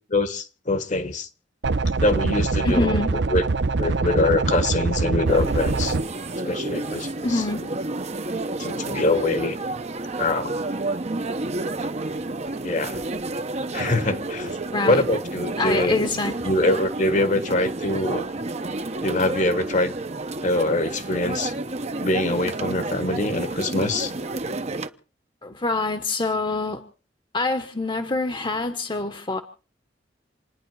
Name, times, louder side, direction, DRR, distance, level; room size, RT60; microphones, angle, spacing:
voice 1, 0.1-1.3 2.0-3.0 3.3-3.4 3.8-6.0 6.4-7.4 8.6-9.6 10.2-10.5 12.6-13.0 13.7-14.6 14.9-16.1 16.4-18.3 19.0-19.9 20.4-21.5 22.0-24.1, left 2 dB, 45° left, 1.4 m, -24 dB
sound 1, 1.6-6.0, right 3 dB, 70° right, 0.8 m, -23 dB
voice 2, 2.6-3.2 7.2-7.7 14.7-15.0 15.6-16.4 25.4-26.8 27.3-29.4, left 2 dB, 25° left, 1.1 m, -25 dB
sound 2, 5.3-24.9, right 2 dB, 35° right, 0.9 m, -30 dB
28.5 x 10.0 x 4.7 m
head